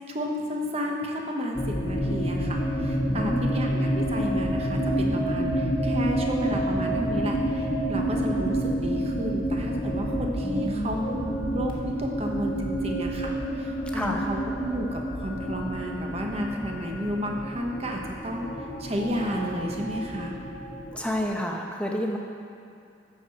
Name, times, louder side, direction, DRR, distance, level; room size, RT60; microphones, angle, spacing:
voice 1, 0.1-11.7 12.0-18.5 18.8-20.3, equal, 35° right, 1 dB, 1.0 m, -32 dB
sound 1, 1.5-21.4, right 1 dB, 25° left, 1.3 m, -29 dB
voice 2, 3.1-3.7 10.4-11.2 13.9-14.3 20.9-22.2, equal, 5° left, 0 dB, 0.8 m, -30 dB
14.0 x 4.8 x 5.7 m, 2.6 s
head